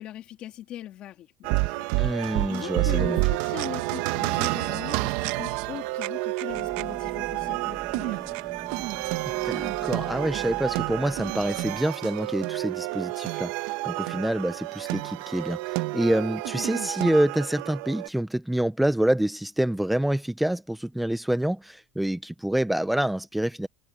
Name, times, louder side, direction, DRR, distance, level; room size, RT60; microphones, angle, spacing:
voice 1, 0.0-8.4, left 12 dB, 45° left, 3.0 m, -40 dB
sound 1, 1.4-18.1, right 20 dB, 70° right, 0.9 m, -29 dB
voice 2, 2.0-3.2 9.4-23.7, right 1 dB, 5° right, 0.5 m, -27 dB
sound 2, 6.5-11.8, right 6 dB, 25° right, 1.5 m, -43 dB
cardioid pair, 145°, 2 cm